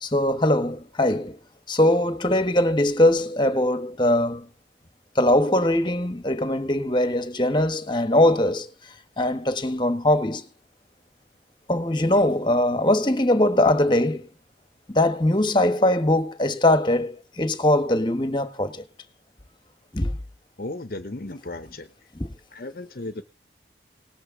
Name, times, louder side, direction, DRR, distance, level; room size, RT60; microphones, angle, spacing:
voice 1, 0.0-1.3 1.7-4.5 5.1-8.7 9.2-10.4 11.7-14.3 14.9-18.8 19.9-20.2 22.1-22.3, left 1 dB, 25° left, 1.4 m, -21 dB
voice 2, 20.6-21.9 22.5-23.2, left 2 dB, 55° left, 0.9 m, -35 dB
19.0 x 6.4 x 7.4 m
head